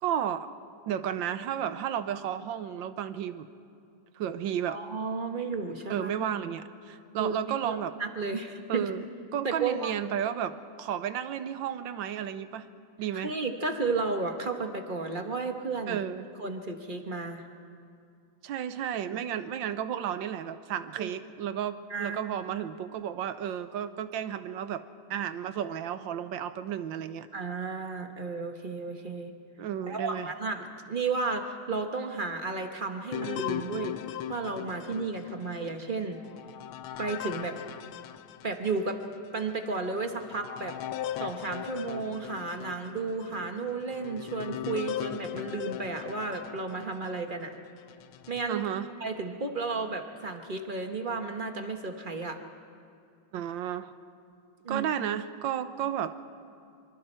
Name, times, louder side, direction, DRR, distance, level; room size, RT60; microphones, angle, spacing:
voice 1, 0.0-0.5 0.9-3.5 4.2-4.8 5.9-7.9 8.7-9.0 9.3-12.7 13.0-13.3 15.9-16.3 18.4-24.8 25.1-27.3 29.6-30.3 48.5-48.9 53.3-53.9 54.7-56.1, right 9 dB, 75° right, 12 dB, 1.4 m, -32 dB
voice 2, 4.7-6.1 7.2-8.9 9.4-9.9 13.1-16.0 16.4-17.4 19.1-19.2 21.0-21.1 21.9-22.2 27.3-29.3 29.9-36.2 37.0-37.6 38.4-39.0 39.3-40.8 41.2-47.5 48.3-48.6 49.0-52.4 54.6-54.9, right 4 dB, 30° right, 5 dB, 1.0 m, -33 dB
sound 1, 33.1-38.9 39.4-39.5 40.1-47.3 47.9-48.5, left 11 dB, 85° left, 1.5 m, -39 dB
26.0 x 24.5 x 4.4 m, 2.4 s
omnidirectional pair, 2.2 m